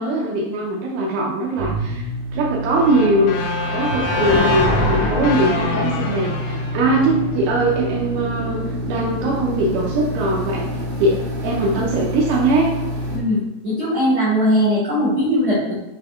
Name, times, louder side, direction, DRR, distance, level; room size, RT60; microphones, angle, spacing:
voice 1, 0.0-2.1 2.3-3.3 3.7-10.7 11.0-11.2 11.4-12.7, right 2 dB, 90° right, -3 dB, 1.9 m, -21 dB
sound 1, 1.6-13.2, right 1 dB, 75° right, 1.9 m, -27 dB
sound 2, 2.8-7.8, left 3 dB, 85° left, 1.9 m, -24 dB
voice 2, 13.1-15.7, equal, 60° right, -10 dB, 1.6 m, -19 dB
5.8 x 3.5 x 2.3 m, 0.92 s
omnidirectional pair, 4.5 m